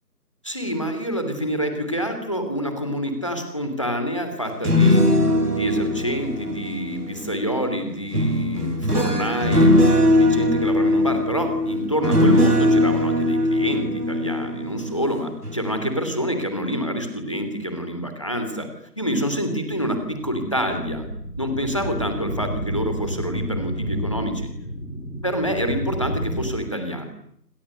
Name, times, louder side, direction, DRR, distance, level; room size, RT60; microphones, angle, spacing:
voice 1, 0.4-5.1 5.4-18.7 19.0-21.1 21.4-24.5 25.2-27.0, equal, 20° left, 7 dB, 2.9 m, -27 dB
sound 1, 4.5-7.3 8.1-15.1 15.4-15.7, left 1 dB, 65° right, 4.2 m, -20 dB
sound 2, 19.7-26.4, equal, ahead, 5.3 m, -31 dB
29.0 x 27.5 x 6.7 m, 0.69 s
figure-of-eight pair, 175°, 49 cm